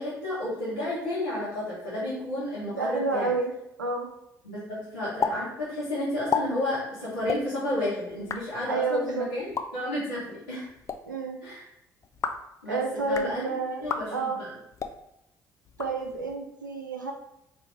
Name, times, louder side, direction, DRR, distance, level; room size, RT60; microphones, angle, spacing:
voice 1, 0.0-3.3 4.4-10.7 11.4-11.6 12.6-12.8 13.1-13.5 13.8-14.5, left 1 dB, 85° left, -12 dB, 1.2 m, -31 dB
voice 2, 2.8-3.5 3.8-4.1 8.7-9.3 11.0-11.4 12.7-13.8 14.1-14.4 15.8-17.1, right 3 dB, 90° right, 3 dB, 0.4 m, -29 dB
sound 1, 5.2-5.3 5.6-5.7 6.1-6.4 7.2-7.4 8.1-8.4 9.4-9.6 10.7-11.0 12.0-12.5 13.0-13.3 13.8-14.0 14.7-14.9 15.6-16.3, left 5 dB, 30° left, 0.4 m, -31 dB
4.2 x 2.4 x 3.1 m, 0.83 s
figure-of-eight pair, 50°, 10 cm